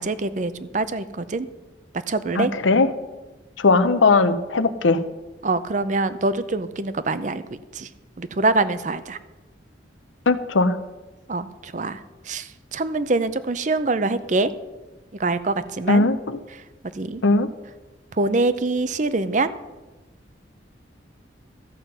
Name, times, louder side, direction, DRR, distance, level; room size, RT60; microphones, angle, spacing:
voice 1, 0.0-1.5 2.1-2.5 5.4-7.4 7.7-7.9 8.2-9.2 11.3-12.0 12.3-14.5 15.2-16.1 17.0-17.2 18.2-19.5, right 3 dB, 40° right, 13 dB, 0.6 m, -24 dB
voice 2, 2.4-2.9 3.6-5.0 10.3-10.7 15.9-16.4 17.2-17.5, left 3 dB, 90° left, 12 dB, 0.7 m, -18 dB
14.0 x 7.7 x 5.5 m, 1.2 s
head